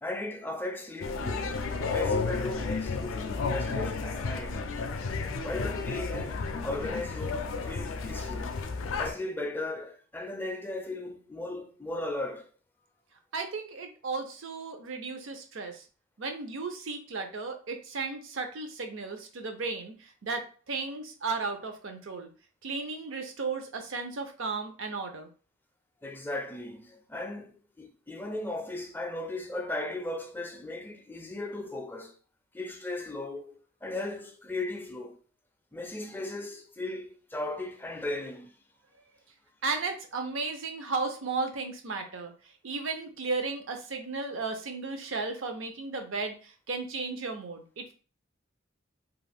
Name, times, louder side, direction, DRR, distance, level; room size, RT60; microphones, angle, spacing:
voice 1, 0.0-4.6 5.4-8.5 9.0-12.5 26.0-32.1 32.5-35.2 35.7-38.5, left 2 dB, 10° left, 0.4 m, -37 dB
sound 1, 1.0-9.1, left 4 dB, 80° left, 0.4 m, -32 dB
voice 2, 13.3-15.8 16.2-22.3 22.6-25.3 39.6-42.3 42.6-47.9, right 4 dB, 75° right, 0.6 m, -34 dB
2.4 x 2.4 x 3.3 m
head